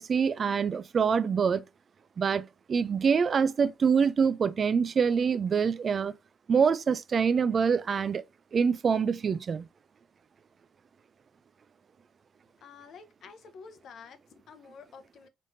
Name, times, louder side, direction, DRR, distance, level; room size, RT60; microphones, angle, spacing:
voice 1, 0.0-1.6 2.2-6.1 6.5-8.2 8.5-9.7, right 6 dB, 45° right, 0.4 m, -25 dB
voice 2, 12.6-15.3, left 5 dB, 65° left, 0.8 m, -50 dB
4.0 x 3.5 x 2.6 m
cardioid pair, 90°, 0 cm